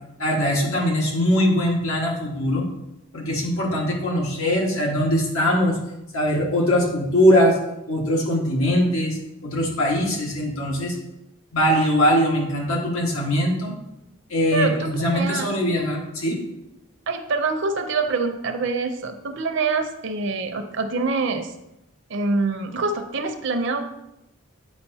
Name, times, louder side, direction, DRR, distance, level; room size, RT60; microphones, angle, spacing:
voice 1, 0.2-2.7 3.1-5.8 6.1-7.6 7.9-11.0 11.5-13.7 14.3-16.4, equal, 85° left, -2 dB, 1.6 m, -21 dB
voice 2, 14.5-15.5 17.1-21.5 22.1-23.8, right 3 dB, 60° right, 6 dB, 0.6 m, -25 dB
7.9 x 5.0 x 2.8 m, 0.88 s
head